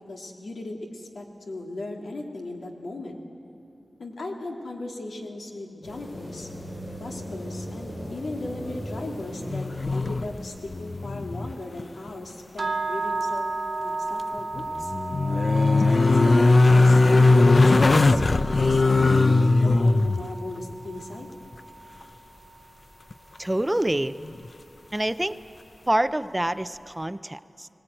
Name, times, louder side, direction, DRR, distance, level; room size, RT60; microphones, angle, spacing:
voice 1, 0.0-3.2 4.0-6.5 7.0-9.7 9.9-13.5 13.8-14.9 15.8-19.2 19.6-21.3, left 2 dB, 85° left, 1 dB, 2.4 m, -37 dB
sound 1, 5.8-11.8, equal, 70° left, 7.1 m, -38 dB
sound 2, 9.5-10.4 10.7-11.5 11.8-11.9 14.4-20.2 23.1-23.2, left 3 dB, 50° left, 0.5 m, -19 dB
sound 3, 12.6-22.7, right 2 dB, 45° right, 0.8 m, -34 dB
voice 2, 23.4-24.2 24.9-25.4 25.9-27.7, right 1 dB, 15° right, 13 dB, 0.5 m, -26 dB
21.0 x 19.0 x 8.9 m, 2.8 s
wide cardioid pair, 95°, 0 cm